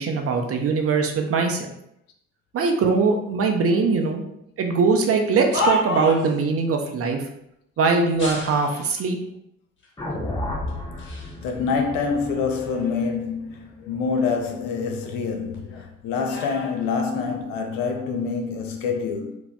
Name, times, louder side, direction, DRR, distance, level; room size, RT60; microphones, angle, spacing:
voice 1, 0.0-1.7 2.5-4.2 4.6-7.3 7.8-9.2, right 4 dB, 35° right, 0.6 m, -21 dB
sound 1, 5.1-6.4 8.1-9.1 9.8-9.9 10.7-11.4 11.8-13.3 13.6-15.3 15.5-17.7 18.4-18.7, left 1 dB, 30° left, 1.1 m, -32 dB
sound 2, 10.0-14.2, left 1 dB, 10° left, 0.8 m, -33 dB
voice 2, 11.4-19.4, left 5 dB, 55° left, 0.7 m, -26 dB
4.6 x 2.2 x 3.5 m
figure-of-eight pair, 45°, 41 cm